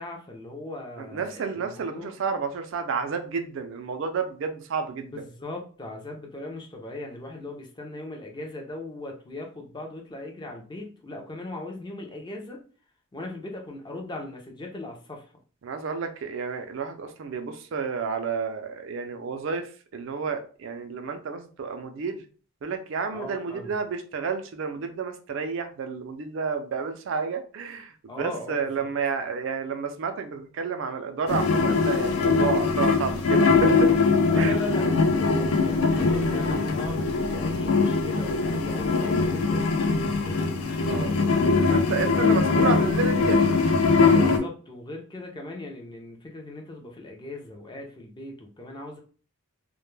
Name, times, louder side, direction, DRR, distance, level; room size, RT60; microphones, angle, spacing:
voice 1, 0.0-2.1 5.1-12.6 13.1-15.2 23.1-23.7 28.1-28.7 34.3-41.3 42.0-42.3 44.0-49.0, left 2 dB, 20° left, 1 dB, 0.4 m, -39 dB
voice 2, 1.0-5.1 15.6-22.2 22.6-33.9 34.3-34.6 40.9-41.1 41.7-43.4, right 5 dB, 60° right, 6 dB, 0.4 m, -30 dB
sound 1, 31.3-44.4, left 4 dB, 85° left, 0.4 m, -22 dB
2.1 x 2.1 x 3.1 m, 0.39 s
head